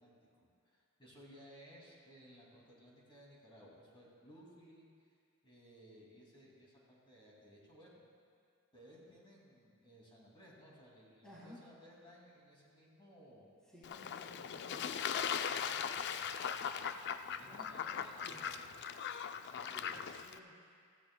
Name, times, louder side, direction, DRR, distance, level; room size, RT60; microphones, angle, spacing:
voice 1, 0.0-4.9 5.4-8.0 8.7-13.5 14.2-18.8 19.5-19.9, equal, 25° left, -4 dB, 2.5 m, -60 dB
voice 2, 11.2-11.7 13.7-15.0 17.4-18.5 19.7-20.8, left 1 dB, 5° left, -9 dB, 1.9 m, -57 dB
Fowl / Bird / Water, 13.8-20.4, left 7 dB, 55° left, 0.4 m, -39 dB
17.0 x 14.0 x 2.2 m, 2.2 s
head